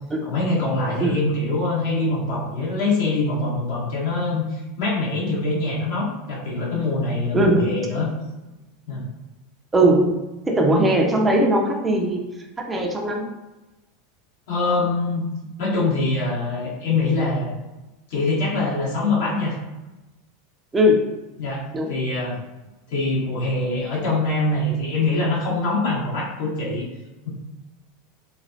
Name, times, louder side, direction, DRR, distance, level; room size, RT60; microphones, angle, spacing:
voice 1, 0.2-8.1 8.9-9.0 14.5-15.3 15.6-17.5 18.1-19.5 21.4-22.4 22.9-26.9, left 2 dB, 70° left, -6 dB, 1.4 m, -24 dB
voice 2, 7.3-7.9 9.7-12.2 12.7-13.2 20.7-21.2 21.7-22.0, right 1 dB, 15° right, 1 dB, 0.5 m, -19 dB
3.1 x 2.4 x 2.6 m, 1.1 s
hypercardioid pair, 100°, 0 cm